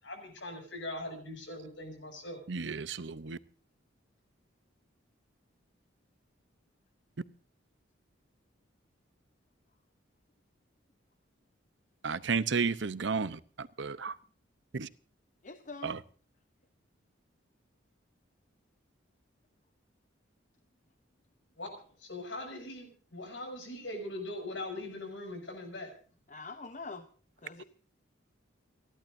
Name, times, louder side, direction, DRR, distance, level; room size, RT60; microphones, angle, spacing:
voice 1, 0.0-2.4 21.6-25.9, left 1 dB, 65° left, 7.2 m, -41 dB
voice 2, 2.5-3.4 12.0-14.2 14.7-14.9 15.8-16.0, right 5 dB, 65° right, 0.7 m, -33 dB
voice 3, 15.4-16.0 26.3-27.0 27.4-27.6, left 3 dB, 40° left, 0.9 m, -44 dB
29.5 x 12.0 x 2.6 m
head